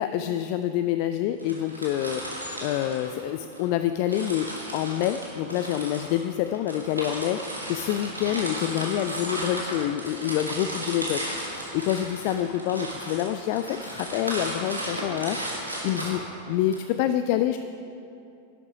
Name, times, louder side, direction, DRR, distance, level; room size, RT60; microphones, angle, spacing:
voice 1, 0.0-2.2 2.6-7.4 7.7-15.5 15.8-16.2 16.5-17.6, left 12 dB, 45° left, 10 dB, 0.3 m, -27 dB
sound 1, 1.4-3.6 4.1-16.8, right 1 dB, 85° right, 2.1 m, -35 dB
11.0 x 8.7 x 4.8 m, 2.7 s
figure-of-eight pair, 90°, 0 cm